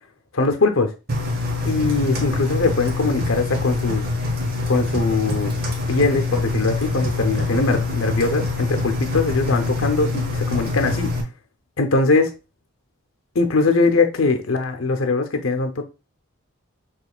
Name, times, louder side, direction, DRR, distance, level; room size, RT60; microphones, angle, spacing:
voice 1, 0.3-0.9 1.6-4.0 4.7-5.5 5.9-11.1 11.8-12.3 13.3-15.8, left 3 dB, 70° left, 0.8 m, -21 dB
Engine, 1.1-11.2, left 3 dB, 45° right, 0.9 m, -25 dB
6.3 x 3.1 x 2.4 m
head